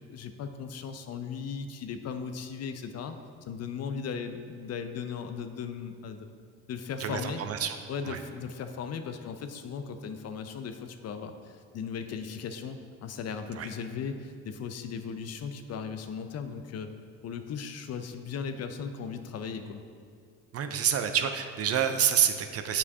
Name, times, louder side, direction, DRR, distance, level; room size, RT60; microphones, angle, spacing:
voice 1, 0.1-3.2 3.5-6.3 6.7-7.4 7.9-16.9 17.2-19.8, left 6 dB, 45° left, 8 dB, 0.5 m, -37 dB
voice 2, 7.0-7.8 8.1-8.2 13.6-13.7 20.5-22.8, right 8 dB, 45° right, 7 dB, 0.5 m, -27 dB
8.3 x 5.0 x 2.7 m, 2.2 s
supercardioid pair, 90°, 36 cm